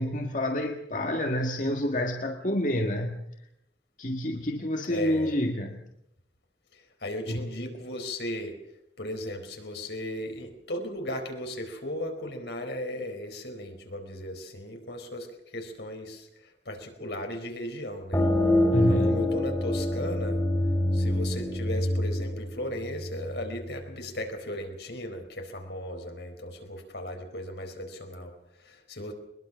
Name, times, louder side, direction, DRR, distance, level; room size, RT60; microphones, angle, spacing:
voice 1, 0.0-3.2 4.0-5.8 7.3-7.5 18.7-19.2, left 1 dB, 45° left, 2 dB, 1.7 m, -28 dB
voice 2, 4.9-5.3 6.7-8.6 9.0-18.3 18.9-20.4 20.9-29.1, left 1 dB, 80° left, 4 dB, 4.4 m, -36 dB
sound 1, 18.1-23.5, left 1 dB, 15° left, 3.0 m, -26 dB
22.0 x 21.5 x 6.2 m, 0.81 s
head